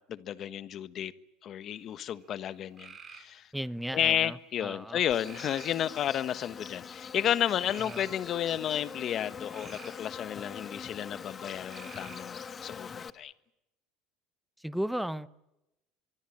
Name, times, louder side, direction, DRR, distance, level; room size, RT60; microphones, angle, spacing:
voice 1, 0.1-1.1 1.4-3.5 3.9-13.3, left 10 dB, 45° left, 13 dB, 1.4 m, -32 dB
sound 1, 1.8-2.2 2.8-3.3 4.0-4.5 5.2-5.8 6.5-6.8 7.6-8.1 9.2-10.0 11.7-12.4, right 5 dB, 25° right, 5.5 m, -49 dB
voice 2, 3.5-5.0 7.8-8.0 14.6-15.3, equal, ahead, 16 dB, 1.0 m, -35 dB
Insect, 5.1-13.1, left 6 dB, 30° left, 1.2 m, -43 dB
25.0 x 23.5 x 8.8 m, 0.90 s
supercardioid pair, 110°, 0 cm